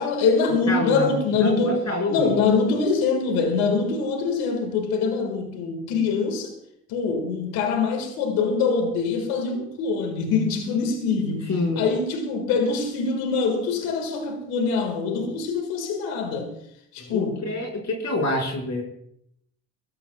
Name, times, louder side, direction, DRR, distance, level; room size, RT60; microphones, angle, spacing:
voice 1, 0.0-1.8 2.1-6.5 6.9-11.5 11.8-16.5 16.9-17.5, left 4 dB, 85° left, 5 dB, 1.9 m, -24 dB
voice 2, 0.7-1.1 1.4-2.3 11.5-11.9 17.0-18.8, left 2 dB, 50° left, -1 dB, 5.2 m, -27 dB
23.0 x 14.5 x 2.3 m, 0.74 s
hypercardioid pair, 55°, 35 cm